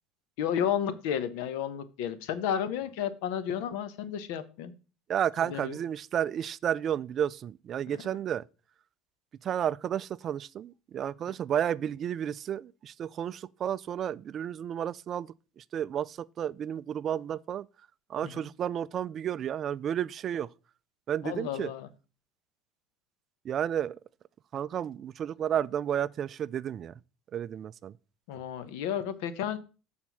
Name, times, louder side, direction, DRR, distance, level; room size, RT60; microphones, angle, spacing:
voice 1, 0.4-4.7 5.4-5.8 7.9-8.0 18.2-18.5 21.2-21.9 28.3-29.6, left 9 dB, 80° left, 0.9 m, -32 dB
voice 2, 5.1-8.5 9.4-17.7 18.1-20.5 21.1-21.7 23.4-24.0 24.5-26.9 27.3-27.9, right 9 dB, 35° right, 0.3 m, -32 dB
7.2 x 4.3 x 6.0 m
cardioid pair, 145°, 0 cm